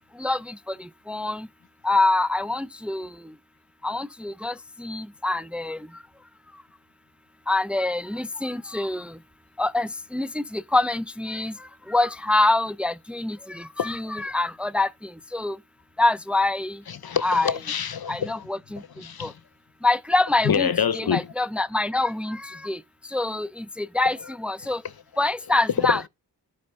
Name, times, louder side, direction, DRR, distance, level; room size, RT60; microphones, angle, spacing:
voice 1, 1.1-1.5 1.8-3.1 3.8-4.5 4.8-5.8 7.5-9.0 9.6-11.5 11.9-14.9 15.3-15.6 16.0-16.7 17.2-17.5 18.1-18.8 19.2-19.3 19.8-20.7 20.9-22.8 23.1-24.8 25.2-26.1, left 2 dB, 5° right, 0.6 m, -25 dB
voice 2, 16.9-18.5 19.0-19.3 20.4-21.3 25.8-26.1, left 8 dB, 55° left, 0.9 m, -26 dB
11.5 x 5.5 x 5.4 m
cardioid pair, 55°, 43 cm